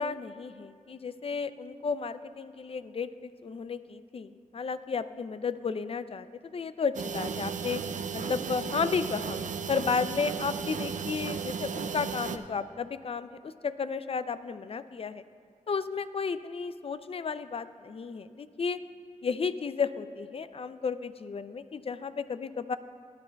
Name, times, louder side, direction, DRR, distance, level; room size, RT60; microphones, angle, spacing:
voice 1, 0.0-6.3 6.5-7.8 8.1-9.4 9.7-15.2 15.7-18.8 19.2-22.8, left 5 dB, 45° left, 13 dB, 0.4 m, -33 dB
sound 1, 6.9-12.4, right 6 dB, 70° right, 0.5 m, -35 dB
17.0 x 10.5 x 2.3 m, 2.1 s
cardioid pair, 60°, 13 cm